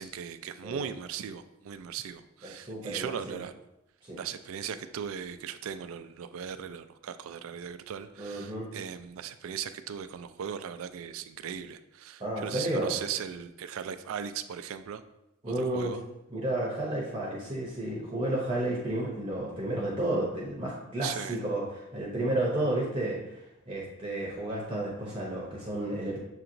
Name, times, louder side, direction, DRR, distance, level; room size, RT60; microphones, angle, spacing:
voice 1, 0.0-3.5 4.2-15.0 15.5-16.0 21.0-21.4, right 8 dB, 85° right, 11 dB, 0.3 m, -38 dB
voice 2, 2.4-3.4 4.0-4.2 8.2-8.7 12.2-12.9 15.4-16.0 16.3-23.4 23.7-26.2, right 1 dB, 25° right, -4 dB, 0.7 m, -32 dB
6.7 x 2.8 x 2.6 m, 0.90 s
head